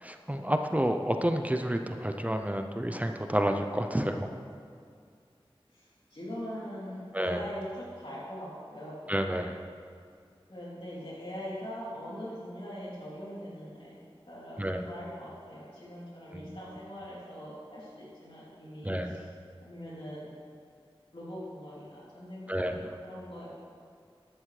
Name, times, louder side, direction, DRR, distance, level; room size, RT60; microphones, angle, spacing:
voice 1, 0.0-4.3 7.1-7.4 9.1-9.6 14.6-14.9 16.3-16.6 18.8-19.2 22.5-22.8, equal, 15° right, 5 dB, 0.6 m, -30 dB
voice 2, 5.7-9.0 10.5-13.9 14.3-19.3 19.6-20.3 21.1-23.5, equal, 65° left, -8 dB, 3.3 m, -42 dB
14.0 x 11.0 x 3.3 m, 2.2 s
wide cardioid pair, 55°, 10 cm